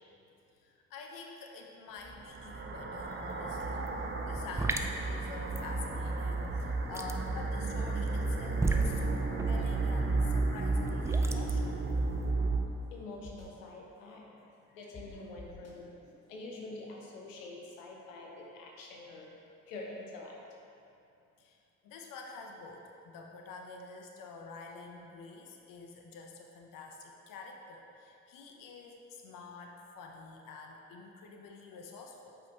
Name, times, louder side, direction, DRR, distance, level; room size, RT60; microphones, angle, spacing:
voice 1, 0.6-11.8 21.4-21.6 21.8-32.4, left 4 dB, 60° left, 1 dB, 0.8 m, -48 dB
sound 1, 2.0-12.6, right 3 dB, 30° right, 0.8 m, -32 dB
sound 2, 3.1-3.3 3.6-12.3, right 2 dB, 10° right, 0.4 m, -37 dB
sound 3, 8.3-8.4 8.8-8.9 10.8-11.2 12.1-12.2 12.5-12.6 13.2-13.5 14.9-15.0 15.4-15.7, left 2 dB, 40° left, 1.3 m, -48 dB
voice 2, 12.9-14.3 14.7-19.3 19.6-20.4, left 2 dB, 85° left, -1 dB, 1.0 m, -46 dB
8.5 x 5.2 x 3.0 m, 2.7 s
hypercardioid pair, 50°, 37 cm